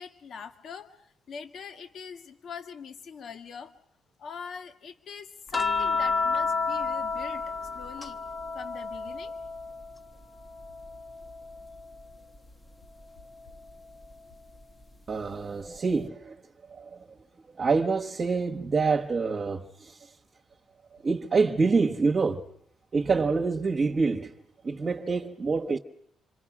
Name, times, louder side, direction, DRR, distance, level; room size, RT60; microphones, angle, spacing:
voice 1, 0.0-3.7 4.2-8.2 8.5-9.4, left 6 dB, 60° left, 2.0 m, -43 dB
sound 1, 5.5-10.0 10.4-12.0 13.5-13.7, left 4 dB, 25° left, 1.2 m, -31 dB
voice 2, 15.1-16.4 16.7-17.0 17.6-19.9 21.0-22.4 22.9-24.3 24.6-25.8, right 4 dB, 40° right, 1.3 m, -26 dB
27.5 x 25.5 x 6.2 m
cardioid pair, 90°, 0 cm